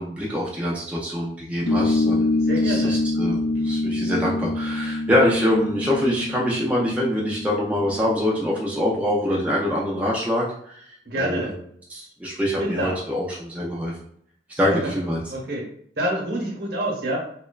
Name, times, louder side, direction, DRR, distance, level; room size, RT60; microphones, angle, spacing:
voice 1, 0.0-2.4 2.6-10.8 11.2-11.5 11.9-13.9 14.5-15.2, left 1 dB, 10° right, -4 dB, 0.3 m, -24 dB
sound 1, 1.7-8.6, left 2 dB, 75° left, 0.5 m, -25 dB
voice 2, 2.4-3.0 11.0-11.6 12.6-13.0 14.6-14.9 15.3-15.7 16.0-17.2, right 1 dB, 65° right, -2 dB, 0.9 m, -27 dB
2.9 x 2.2 x 2.3 m, 0.66 s
head